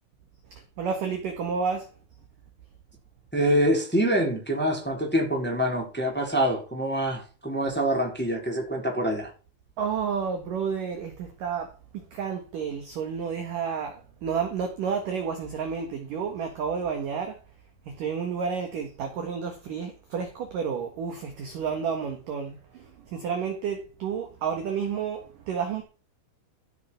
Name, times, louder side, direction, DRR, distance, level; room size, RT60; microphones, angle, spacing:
voice 1, 0.5-1.9 9.8-17.4 17.9-25.8, right 6 dB, 60° right, 2.4 m, -31 dB
voice 2, 3.3-9.3, equal, ahead, 3.2 m, -25 dB
15.5 x 6.4 x 5.7 m
omnidirectional pair, 5.7 m